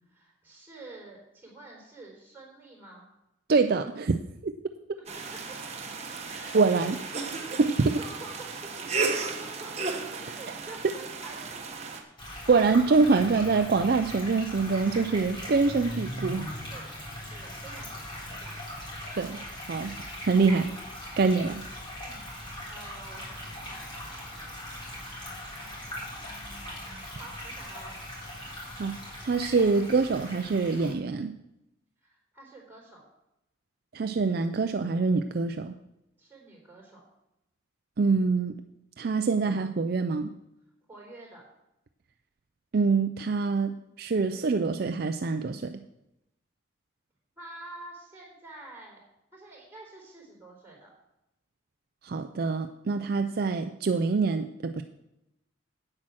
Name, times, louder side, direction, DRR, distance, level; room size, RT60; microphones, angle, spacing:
voice 1, 0.0-3.1 5.1-5.2 6.3-6.9 7.3-9.9 10.2-11.6 12.6-13.0 16.7-18.6 20.4-20.6 22.0-22.3 22.7-28.0 32.0-33.1 36.2-37.1 40.9-41.4 47.4-49.0 49.3-50.9 53.2-53.3, right 2 dB, 10° right, -3 dB, 4.0 m, -48 dB
voice 2, 3.5-4.2 4.4-4.5 6.5-7.0 7.6-7.9 12.5-16.5 19.2-19.4 19.7-19.9 20.2-20.7 21.2-21.6 28.8-28.9 29.2-31.4 33.9-35.7 38.0-38.5 39.0-40.3 42.7-45.8 52.0-54.8, right 4 dB, 50° right, 8 dB, 0.4 m, -25 dB
sound 1, 5.1-12.0, right 4 dB, 35° right, 1.2 m, -34 dB
sound 2, 12.2-30.9, left 1 dB, 25° left, 3.6 m, -40 dB
8.8 x 8.5 x 6.2 m, 0.88 s
head